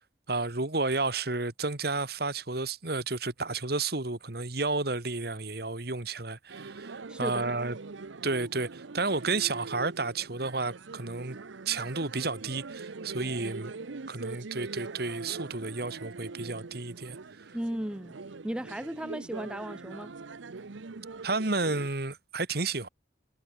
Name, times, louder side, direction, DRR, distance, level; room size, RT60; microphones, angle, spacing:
voice 1, 0.3-7.7 8.2-11.4 11.7-13.7 14.0-17.2 21.2-22.9, right 3 dB, 55° right, 1.9 m, -31 dB
sound 1, 6.5-21.9, right 4 dB, 85° right, 0.8 m, -43 dB
voice 2, 7.1-7.5 17.5-18.1 18.4-20.1, right 1 dB, 5° right, 0.3 m, -35 dB
head